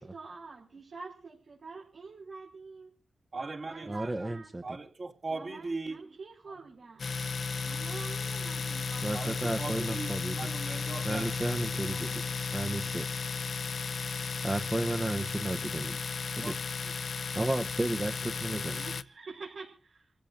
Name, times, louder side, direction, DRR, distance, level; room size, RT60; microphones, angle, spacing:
voice 1, 0.0-2.9 3.7-4.5 5.3-7.1 7.6-9.2 11.8-12.9 18.7-20.0, right 4 dB, 85° right, 5.4 m, -47 dB
voice 2, 3.3-4.3 4.6-6.2 9.1-11.3 16.4-16.5, right 3 dB, 50° right, 2.4 m, -39 dB
voice 3, 3.9-4.6 9.0-10.4 11.0-12.2 12.5-13.1 14.4-16.0 16.4-16.7 17.3-18.8, right 1 dB, 25° right, 0.9 m, -33 dB
Domestic sounds home sounds, 7.0-19.0, left 5 dB, 65° left, 0.7 m, -34 dB
28.5 x 15.5 x 2.6 m
wide cardioid pair, 95°, 0 cm